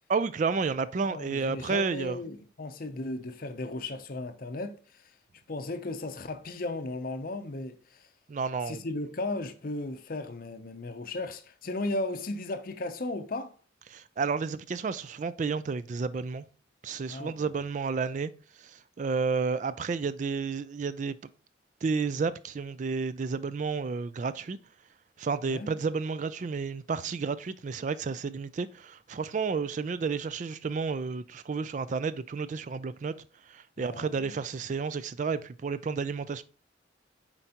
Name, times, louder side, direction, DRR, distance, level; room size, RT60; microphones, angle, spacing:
voice 1, 0.1-2.2 8.3-8.8 13.9-16.4 16.8-18.3 18.6-21.2 21.8-24.6 25.2-33.2 33.4-36.4, right 5 dB, 40° right, 0.3 m, -31 dB
voice 2, 1.0-5.1 5.5-8.1 8.7-13.5 17.1-17.5 25.5-25.7 33.8-34.4, left 2 dB, 45° left, 0.6 m, -36 dB
7.7 x 4.5 x 2.9 m
head